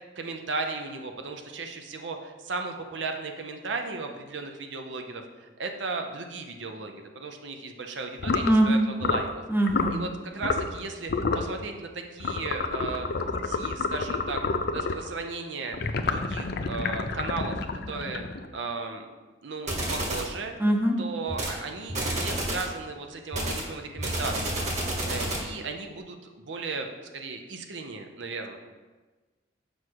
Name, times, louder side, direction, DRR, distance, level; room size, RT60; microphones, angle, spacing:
voice 1, 0.2-9.3 9.9-14.4 14.7-15.8 16.1-17.6 17.9-19.1 19.4-20.6 21.0-24.7 25.1-26.9 27.1-28.6, right 3 dB, 80° right, 4 dB, 0.7 m, -36 dB
sound 1, 8.2-8.5 9.0-9.3 9.7-10.0 10.4-10.8 11.1-11.5 12.2-15.1 15.7-18.6, left 4 dB, 60° left, 0.5 m, -29 dB
voice 2, 8.4-8.9 9.5-9.9 20.6-21.0, right 1 dB, 10° right, 2 dB, 0.7 m, -22 dB
sound 2, 19.7-20.3 21.3-21.6 21.9-22.7 23.3-25.5, right 1 dB, 40° right, 1.4 m, -30 dB
6.5 x 4.9 x 4.7 m, 1.3 s
head